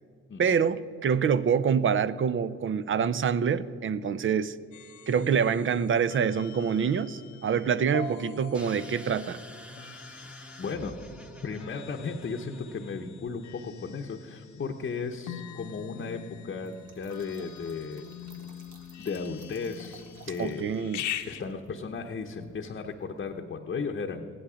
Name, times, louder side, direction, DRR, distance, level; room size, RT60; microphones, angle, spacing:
voice 1, 0.4-4.6 5.1-9.4 20.4-21.0, right 7 dB, 40° right, 16 dB, 0.6 m, -26 dB
sound 1, 4.7-21.4, left 10 dB, 70° left, 0.9 m, -44 dB
sound 2, 8.5-13.3, equal, 5° right, 1.1 m, -47 dB
voice 2, 10.6-11.0 11.4-18.0 19.0-20.9 21.3-24.3, left 5 dB, 35° left, 3 dB, 0.9 m, -35 dB
Trickle dribble / Fill (with liquid), 16.6-23.4, right 4 dB, 80° right, 1.8 m, -57 dB
15.5 x 11.0 x 5.0 m, 2.4 s
cardioid pair, 90°, 30 cm